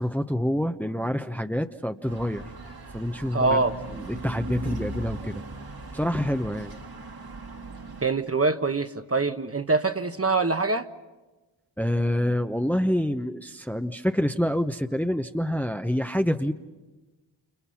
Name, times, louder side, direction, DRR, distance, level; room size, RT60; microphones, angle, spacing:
voice 1, 0.0-2.4 2.9-3.6 3.9-5.4 5.9-6.7 11.8-16.5, equal, 5° left, 0.9 m, -27 dB
sound 1, 2.1-8.1, right 2 dB, 50° right, 2.2 m, -39 dB
voice 2, 3.3-3.7 8.0-10.9, right 3 dB, 30° right, 1.2 m, -24 dB
29.0 x 28.5 x 5.8 m
cardioid pair, 45°, 49 cm